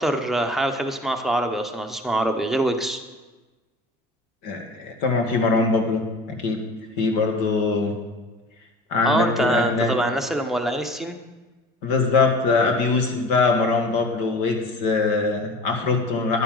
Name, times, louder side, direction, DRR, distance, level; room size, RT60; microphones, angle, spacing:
voice 1, 0.0-3.0 9.0-11.2, right 1 dB, ahead, 4 dB, 0.8 m, -24 dB
voice 2, 4.4-6.6 7.0-7.9 8.9-9.9 11.8-16.4, left 4 dB, 75° left, 3 dB, 1.9 m, -22 dB
10.5 x 9.8 x 3.9 m, 1.2 s
supercardioid pair, 130°, 20 cm